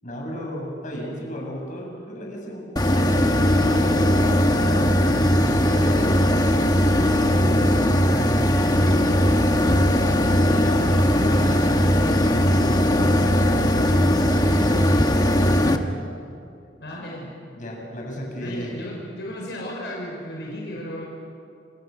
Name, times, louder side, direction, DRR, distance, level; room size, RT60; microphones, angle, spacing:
voice 1, 0.0-6.8 10.5-10.8 13.2-15.6 17.5-18.8, equal, 45° left, -1 dB, 7.7 m, -34 dB
sound 1, 2.8-15.8, equal, 20° left, 1.5 m, -19 dB
voice 2, 8.0-8.3 9.0-9.9 10.4-12.5 16.8-17.3 18.4-21.1, equal, 70° left, -2 dB, 5.9 m, -35 dB
29.0 x 28.5 x 6.7 m, 2.5 s
head